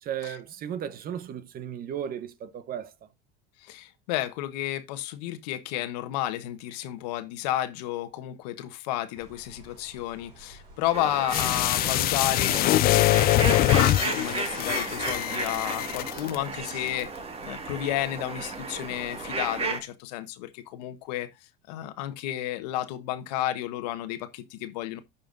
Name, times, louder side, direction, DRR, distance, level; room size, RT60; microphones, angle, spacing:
voice 1, 0.0-2.9, right 9 dB, 45° right, 1.1 m, -35 dB
voice 2, 3.6-21.3 21.7-25.0, left 13 dB, 80° left, 1.2 m, -32 dB
sound 1, 9.1-19.7, right 2 dB, 75° right, 4.3 m, -51 dB
sound 2, 10.9-19.8, right 4 dB, 30° right, 1.9 m, -34 dB
sound 3, 11.3-16.3 16.7-16.8, left 16 dB, 45° left, 0.4 m, -23 dB
14.5 x 5.7 x 2.6 m
supercardioid pair, 95°, 21 cm